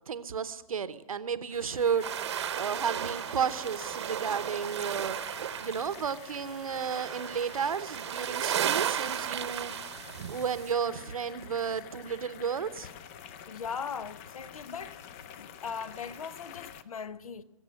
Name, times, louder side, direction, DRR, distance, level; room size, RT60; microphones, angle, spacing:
voice 1, 0.1-2.2 2.5-5.2 5.6-9.7 10.3-12.9, right 7 dB, 75° right, 1.0 m, -32 dB
sound 1, 1.5-16.8, left 9 dB, 25° left, 0.5 m, -48 dB
sound 2, 2.0-10.7, right 9 dB, 50° right, 0.9 m, -35 dB
voice 2, 13.5-15.0 15.4-17.4, left 6 dB, 75° left, 0.8 m, -39 dB
22.0 x 7.9 x 6.4 m
hypercardioid pair, 145°, 18 cm